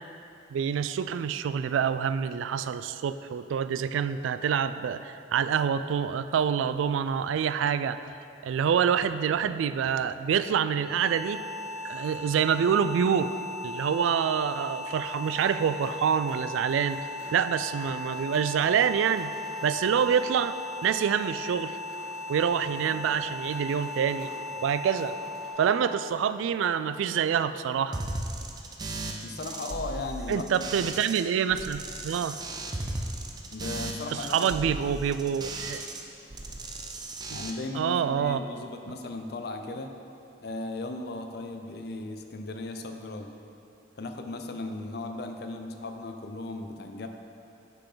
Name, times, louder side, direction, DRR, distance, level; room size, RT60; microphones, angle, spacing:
voice 1, 0.5-8.0 8.4-11.4 11.8-13.4 13.6-17.0 17.3-19.3 19.6-21.8 22.3-24.3 24.6-25.1 25.6-28.0 30.3-32.4 34.1-35.8 37.3-37.4 37.7-38.4, right 7 dB, 90° right, 13 dB, 0.3 m, -26 dB
sound 1, 10.6-27.6, left 2 dB, ahead, 1.1 m, -38 dB
sound 2, 14.5-25.5, left 1 dB, 30° left, 1.2 m, -50 dB
sound 3, 27.9-31.2 31.5-36.0 36.3-37.5, right 2 dB, 20° right, 0.5 m, -36 dB
voice 2, 29.2-30.8 33.5-34.6 37.3-39.9 40.4-43.3 44.0-47.1, left 2 dB, 55° left, 5 dB, 0.5 m, -37 dB
10.0 x 5.9 x 3.8 m, 2.7 s
head